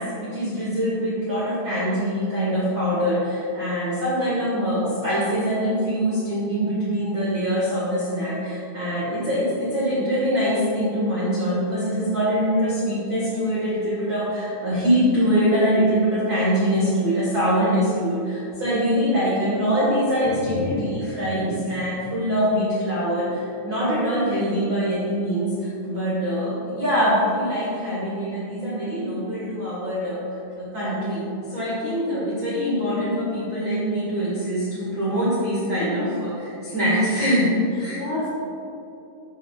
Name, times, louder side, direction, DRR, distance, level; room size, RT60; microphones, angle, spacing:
voice 1, 0.0-30.2 30.5-31.2 31.5-36.3 36.6-38.0, equal, 70° right, -9 dB, 1.1 m, -23 dB
voice 2, 20.2-20.9 30.8-31.0 35.8-36.1 37.8-38.3, left 3 dB, 75° left, -4 dB, 2.4 m, -30 dB
7.7 x 7.2 x 4.8 m, 2.8 s
omnidirectional pair, 5.5 m